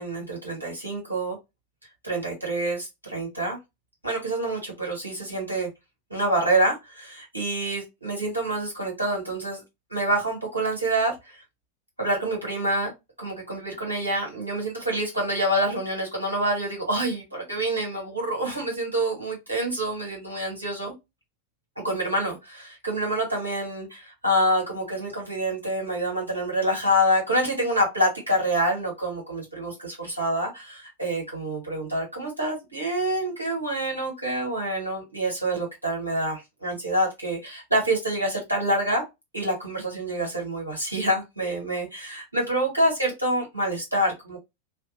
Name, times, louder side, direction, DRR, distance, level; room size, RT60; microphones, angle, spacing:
voice 1, 0.0-1.4 2.0-3.6 4.0-5.7 6.1-9.6 9.9-11.1 12.0-12.9 13.2-20.9 21.8-39.0 39.3-44.4, right 1 dB, 85° right, -2 dB, 1.8 m, -27 dB
3.2 x 2.4 x 2.9 m, 0.21 s
figure-of-eight pair, 90°, 0 cm